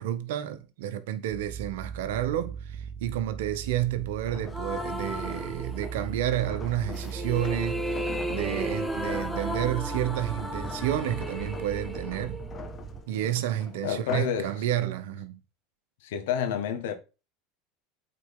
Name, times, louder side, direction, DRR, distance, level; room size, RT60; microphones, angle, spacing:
voice 1, 0.0-12.4 13.1-15.4, right 12 dB, 75° right, 1.0 m, -30 dB
sound 1, 1.3-13.0, right 7 dB, 50° right, 1.0 m, -39 dB
sound 2, 4.2-14.4 14.9-15.1, left 5 dB, 30° left, 1.6 m, -43 dB
sound 3, 4.5-6.2 6.9-13.0, equal, 5° left, 1.6 m, -35 dB
voice 2, 13.8-14.5 16.0-16.9, left 8 dB, 75° left, 1.6 m, -29 dB
8.4 x 4.3 x 3.8 m
hypercardioid pair, 90°, 0 cm